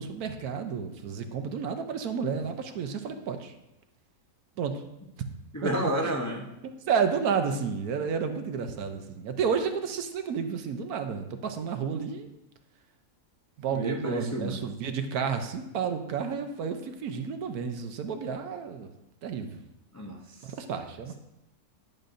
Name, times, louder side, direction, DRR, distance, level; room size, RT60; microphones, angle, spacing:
voice 1, 0.0-3.5 4.6-4.8 5.6-6.1 6.6-12.3 13.6-18.9 19.2-19.6 20.4-21.1, right 6 dB, 80° right, 7 dB, 1.2 m, -31 dB
voice 2, 5.5-6.5 13.7-14.6 19.9-20.2, right 1 dB, 25° left, -1 dB, 0.3 m, -30 dB
10.5 x 6.5 x 2.6 m, 0.90 s
omnidirectional pair, 1.6 m